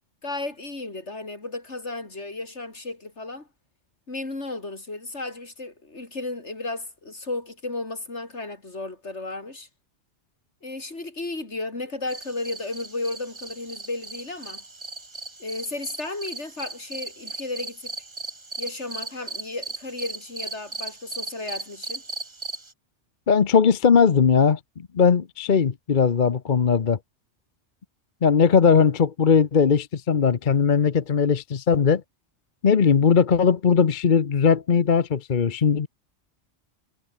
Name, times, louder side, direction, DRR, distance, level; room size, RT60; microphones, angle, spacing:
voice 1, 0.2-3.5 4.1-9.7 10.6-14.6 15.4-17.9 18.6-22.0, left 2 dB, 75° left, 4.3 m, -34 dB
sound 1, 12.1-22.7, right 3 dB, 25° right, 1.3 m, -37 dB
voice 2, 23.3-24.6 24.9-27.0 28.2-32.0 32.6-35.9, left 6 dB, 45° left, 1.0 m, -19 dB
omnidirectional pair, 1.2 m